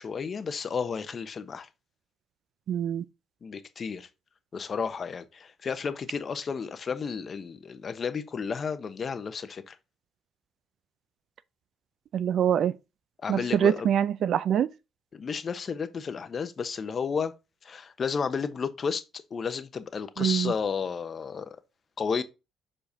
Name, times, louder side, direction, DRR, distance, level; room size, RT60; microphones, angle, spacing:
voice 1, 0.0-1.7 3.4-4.1 4.5-9.8 13.2-13.9 15.1-17.3 17.6-21.6 22.0-22.2, left 6 dB, 45° left, 0.9 m, -32 dB
voice 2, 2.7-3.0 12.1-12.7 13.3-14.7 20.2-20.5, right 9 dB, 65° right, 0.4 m, -24 dB
7.2 x 5.1 x 2.7 m
supercardioid pair, 75°, 0 cm